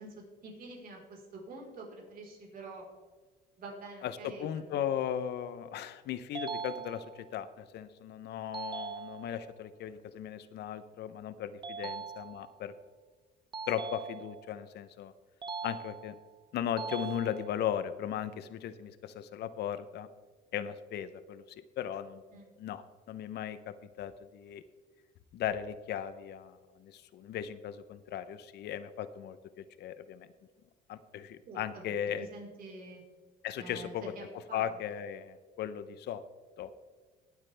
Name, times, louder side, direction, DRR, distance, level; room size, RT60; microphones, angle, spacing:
voice 1, 0.0-2.8 3.6-4.9 11.8-11.9 22.3-22.5 31.4-33.0 33.6-34.8, right 2 dB, 50° right, -1 dB, 4.2 m, -47 dB
voice 2, 4.0-12.7 13.7-15.1 15.6-16.2 16.5-20.1 20.5-21.4 21.8-22.2 22.6-24.6 25.3-30.3 30.9-32.3 33.4-34.0 34.5-36.2 36.6-36.7, left 9 dB, 65° left, 13 dB, 0.7 m, -37 dB
sound 1, 6.3-7.4 8.5-9.5 11.6-12.6 13.5-14.6 15.4-16.3 16.8-17.8, right 5 dB, 25° right, 0.7 m, -41 dB
18.5 x 8.2 x 3.4 m, 1.5 s
cardioid pair, 115°, 19 cm